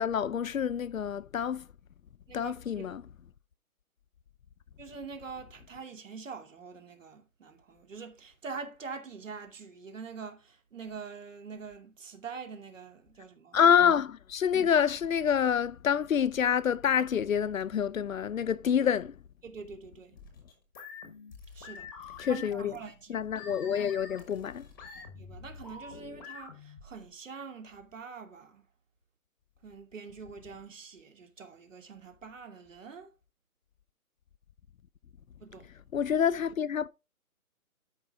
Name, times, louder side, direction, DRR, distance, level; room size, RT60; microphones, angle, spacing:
voice 1, 0.0-1.6 2.3-3.0 13.5-19.1 22.2-22.7 23.1-24.7 35.9-36.9, left 8 dB, 65° left, 0.7 m, -27 dB
voice 2, 2.3-2.9 4.8-13.6 19.4-20.2 21.5-23.2 25.2-28.7 29.6-33.1 35.4-35.7, right 5 dB, 60° right, 2.6 m, -45 dB
sound 1, 20.2-27.1, left 5 dB, 15° left, 1.2 m, -47 dB
12.5 x 5.4 x 3.7 m
hypercardioid pair, 180°, 44 cm